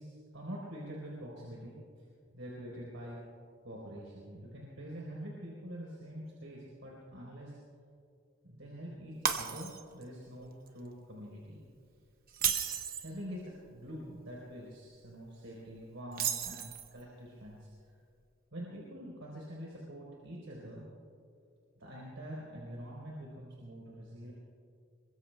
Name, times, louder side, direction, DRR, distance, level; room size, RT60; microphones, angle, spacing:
voice 1, 0.0-2.1 2.3-3.2 3.6-7.6 8.4-11.6 13.0-16.6 16.9-17.7 18.5-20.8 21.8-24.3, equal, 90° right, -4 dB, 3.9 m, -45 dB
Shatter, 9.2-10.0 10.4-10.7 12.3-13.1 16.1-17.0, right 8 dB, 45° right, 1.0 m, -33 dB
27.0 x 23.5 x 2.3 m, 2.4 s
head